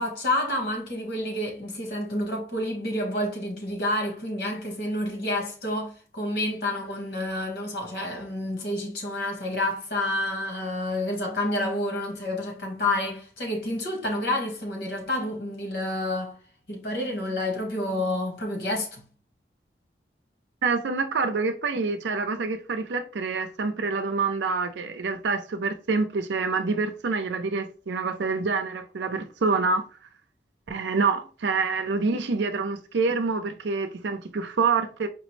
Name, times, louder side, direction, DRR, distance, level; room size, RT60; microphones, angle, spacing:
voice 1, 0.0-16.4 16.7-19.0, left 1 dB, 70° left, 1.3 m, -29 dB
voice 2, 20.6-29.9 30.7-35.1, right 4 dB, 85° right, 0.5 m, -26 dB
4.7 x 2.0 x 3.2 m
head